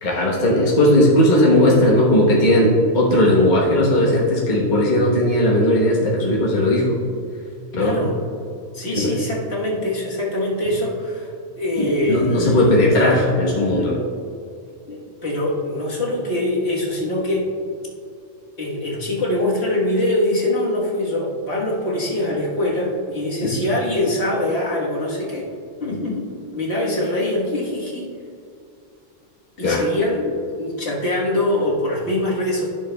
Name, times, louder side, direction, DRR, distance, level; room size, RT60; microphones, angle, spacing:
voice 1, 0.0-7.0 7.7-8.0 8.9-9.2 11.8-14.0 23.4-23.6 29.6-29.8, left 1 dB, 40° left, -4 dB, 1.2 m, -17 dB
voice 2, 7.7-8.2 8.7-11.3 11.6-12.7 14.9-17.5 18.6-25.5 25.8-28.1 29.6-32.7, left 1 dB, 60° left, -4 dB, 1.6 m, -23 dB
12.5 x 6.7 x 2.2 m, 2.4 s
omnidirectional pair, 1.3 m